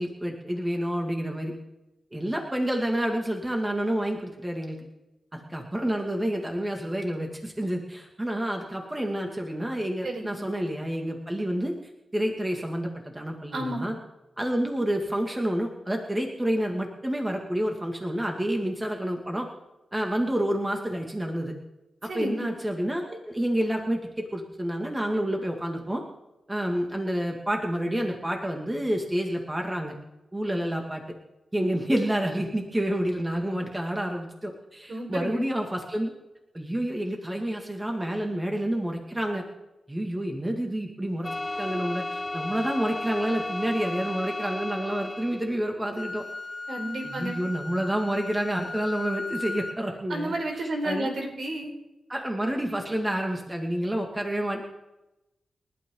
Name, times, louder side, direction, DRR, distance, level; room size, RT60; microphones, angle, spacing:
voice 1, 0.0-1.5 2.1-4.9 5.3-11.7 12.1-13.9 14.4-19.5 19.9-21.5 22.0-26.0 26.5-30.0 30.3-31.0 31.5-36.1 36.5-39.4 39.9-41.3 41.6-46.3 47.0-51.1 52.1-54.6, right 1 dB, 15° right, 2 dB, 2.2 m, -29 dB
voice 2, 10.0-10.4 13.5-13.9 22.1-22.5 34.9-35.5 46.7-47.3 50.1-51.7, right 1 dB, 65° right, 1 dB, 5.0 m, -31 dB
sound 1, 41.2-45.5, left 2 dB, 20° left, 0.4 m, -33 dB
Wind instrument woodwind instrument, 45.9-49.8, left 3 dB, 40° left, 1.5 m, -37 dB
30.0 x 12.0 x 3.9 m, 0.98 s
cardioid pair, 85°, 0 cm